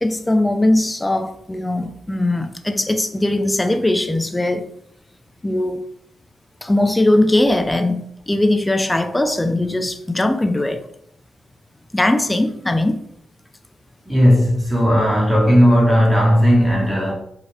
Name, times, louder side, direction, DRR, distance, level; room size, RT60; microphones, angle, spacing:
voice 1, 0.0-4.7 5.4-5.8 6.6-10.8 11.9-13.0, left 1 dB, 15° left, 0.4 m, -19 dB
voice 2, 14.1-17.1, equal, 10° right, 1.4 m, -15 dB
2.7 x 2.4 x 3.2 m
supercardioid pair, 55°, 0 cm